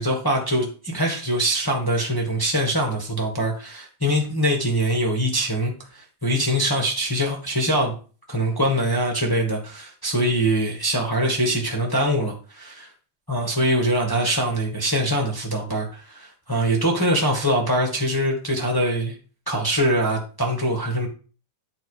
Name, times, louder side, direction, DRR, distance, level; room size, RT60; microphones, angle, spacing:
voice 1, 0.0-7.9 8.3-12.9 13.3-19.1 19.5-21.1, right 1 dB, 25° left, -1 dB, 0.4 m, -23 dB
10.5 x 4.4 x 4.8 m, 0.38 s
omnidirectional pair, 3.4 m